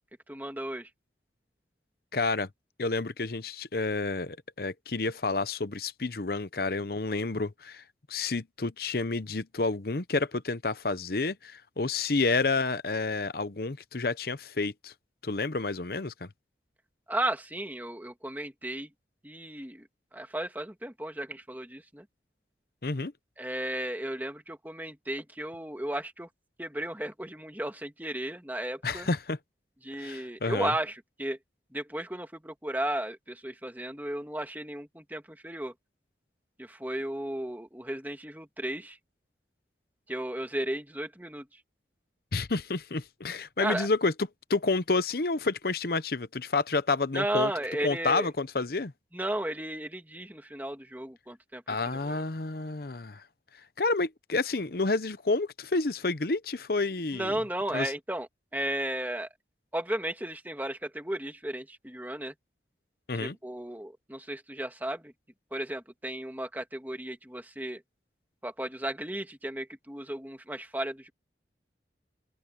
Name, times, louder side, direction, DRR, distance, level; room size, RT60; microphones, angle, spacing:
voice 1, 0.3-0.9 17.1-18.9 19.2-19.9 20.1-22.0 23.4-26.3 26.6-29.1 29.8-31.4 31.7-35.7 36.6-39.0 40.1-41.4 43.6-43.9 47.1-48.3 49.1-51.6 52.0-52.2 57.1-59.3 59.7-62.3 63.2-65.1 65.5-67.8 68.4-71.1, right 1 dB, 10° right, 2.0 m, -34 dB
voice 2, 2.1-2.5 2.8-7.8 8.1-14.9 15.2-16.3 22.8-23.1 28.8-29.4 30.0-30.7 42.3-47.5 47.8-48.9 51.7-53.2 53.8-57.4 57.7-57.9 63.1-63.4, left 3 dB, 55° left, 0.8 m, -29 dB
open air
head